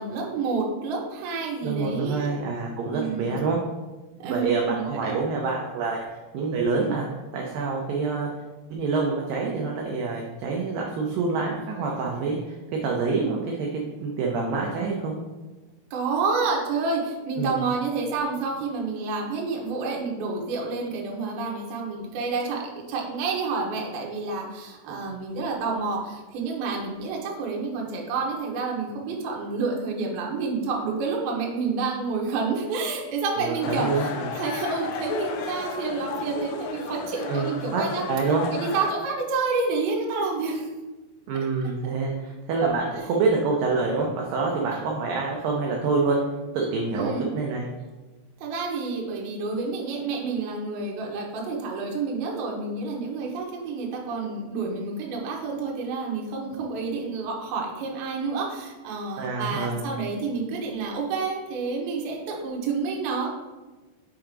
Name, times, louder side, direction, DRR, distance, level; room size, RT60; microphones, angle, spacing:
voice 1, 0.0-2.3 2.9-3.4 4.2-5.2 15.9-38.0 38.5-40.7 46.9-47.3 48.4-63.3, right 4 dB, 70° right, -1 dB, 2.7 m, -29 dB
voice 2, 1.6-3.6 4.2-7.1 7.3-8.3 8.7-12.6 12.8-13.7 14.0-15.2 17.4-17.6 24.9-25.1 33.4-34.3 37.3-38.4 41.3-46.2 46.5-47.7 59.2-59.9, right 4 dB, 90° right, -1 dB, 1.9 m, -26 dB
sound 1, 33.6-38.9, left 5 dB, 80° left, 2.7 m, -33 dB
6.8 x 3.8 x 4.6 m, 1.2 s
omnidirectional pair, 5.0 m